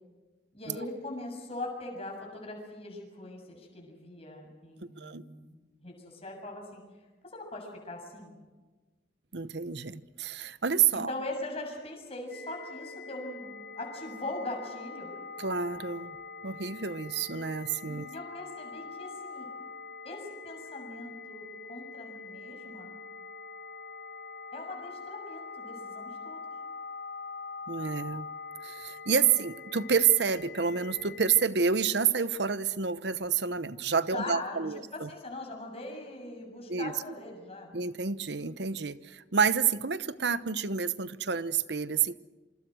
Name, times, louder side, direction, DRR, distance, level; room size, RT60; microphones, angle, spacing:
voice 1, 0.5-6.8 7.2-8.3 10.9-15.2 17.9-19.5 20.0-22.9 24.5-26.4 34.1-37.8, left 2 dB, 35° left, 1 dB, 6.9 m, -41 dB
voice 2, 9.3-11.1 15.4-16.2 16.4-18.1 27.7-28.3 28.6-35.1 36.7-36.9 37.7-42.2, right 6 dB, 65° right, 14 dB, 0.9 m, -29 dB
sound 1, 12.3-31.5, left 4 dB, 55° left, 1.3 m, -44 dB
27.0 x 25.5 x 6.3 m, 1.3 s
head